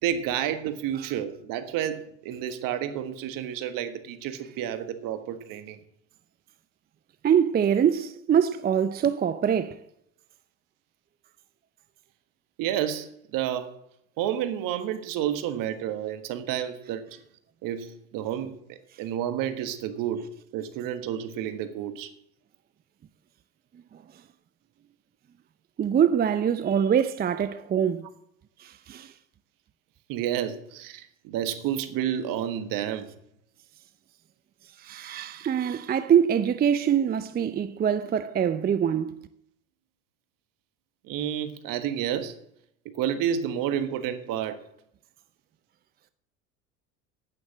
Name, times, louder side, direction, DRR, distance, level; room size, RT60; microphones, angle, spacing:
voice 1, 0.0-5.8 12.6-13.7 14.2-17.0 17.6-20.2 20.5-22.1 30.1-33.1 41.1-42.4 42.9-44.6, right 10 dB, 55° right, 1.5 m, -30 dB
voice 2, 7.2-9.8 25.8-28.1 28.6-29.1 34.8-39.2, right 8 dB, 25° right, 0.6 m, -24 dB
9.3 x 9.2 x 7.3 m
hypercardioid pair, 80°, 39 cm